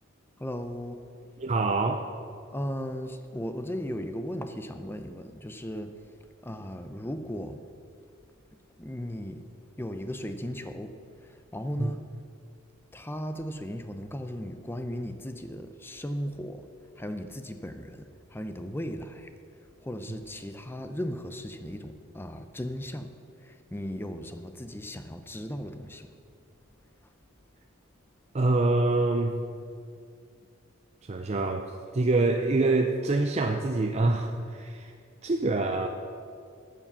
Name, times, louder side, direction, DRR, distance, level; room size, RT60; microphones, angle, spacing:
voice 1, 0.4-1.1 2.5-6.1 6.4-7.7 8.8-9.5 9.8-12.1 12.9-16.7 17.0-19.3 19.8-26.1, equal, 10° left, 0.6 m, -36 dB
voice 2, 1.4-2.1 11.8-11.9 28.3-29.4 31.1-34.9 35.2-35.9, right 2 dB, 30° right, 0.5 m, -25 dB
13.0 x 7.4 x 6.9 m
head